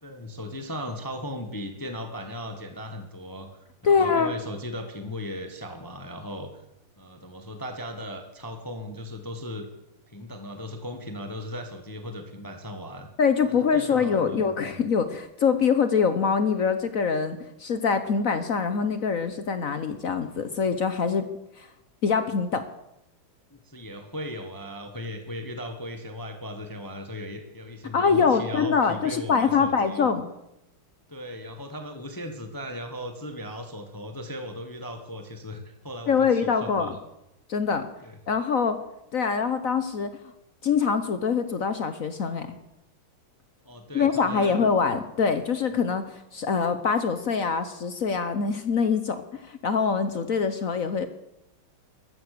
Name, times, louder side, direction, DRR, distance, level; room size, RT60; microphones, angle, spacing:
voice 1, 0.0-6.5 7.0-9.7 10.1-13.1 13.7-14.8 23.5-30.0 31.1-37.0 38.0-38.2 43.6-44.6, equal, 10° left, 6 dB, 1.3 m, -37 dB
voice 2, 3.8-4.3 13.2-21.3 21.6-21.7 22.0-22.7 27.9-30.3 36.1-36.9 37.5-37.9 38.3-38.8 39.1-40.1 40.6-42.6 43.9-51.1, left 6 dB, 55° left, 11 dB, 1.0 m, -24 dB
15.0 x 13.0 x 6.7 m, 0.86 s
omnidirectional pair, 2.3 m